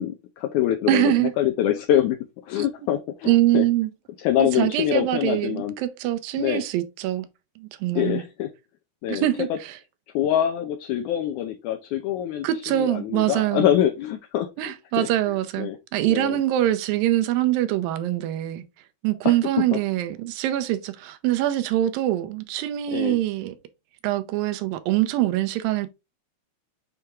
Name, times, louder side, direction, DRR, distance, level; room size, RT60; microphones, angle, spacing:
voice 1, 0.0-2.2 2.4-3.6 4.2-5.7 6.3-6.6 8.0-8.5 9.0-9.3 10.1-15.1 15.6-15.8 16.1-16.4 19.3-19.4 22.9-23.2, left 11 dB, 75° left, 1.8 m, -25 dB
voice 2, 0.9-1.3 3.3-3.9 4.4-7.3 7.6-8.2 9.1-9.8 12.4-13.7 14.6-18.6 19.0-23.6 24.0-25.9, right 14 dB, 80° right, 2.4 m, -24 dB
6.7 x 4.4 x 3.5 m
omnidirectional pair, 4.1 m